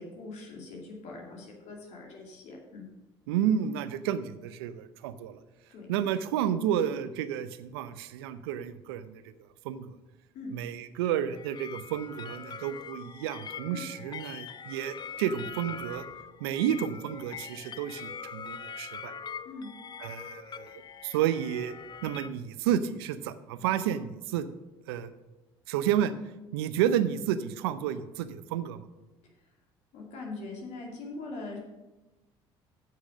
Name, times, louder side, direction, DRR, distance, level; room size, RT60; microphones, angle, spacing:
voice 1, 0.0-2.8 5.7-5.9 10.3-10.5 13.7-13.8 19.4-19.7 29.9-31.6, left 3 dB, 65° left, 0 dB, 2.5 m, -42 dB
voice 2, 3.3-5.4 5.9-9.3 9.6-10.0 10.5-16.1 16.4-19.1 20.0-21.7 22.0-24.5 24.9-25.1 25.7-26.1 26.5-28.9, right 10 dB, 80° right, 13 dB, 0.6 m, -31 dB
sound 1, 11.2-22.3, left 6 dB, 35° left, 0.5 m, -43 dB
8.3 x 6.2 x 6.3 m, 1.1 s
hypercardioid pair, 65°, 13 cm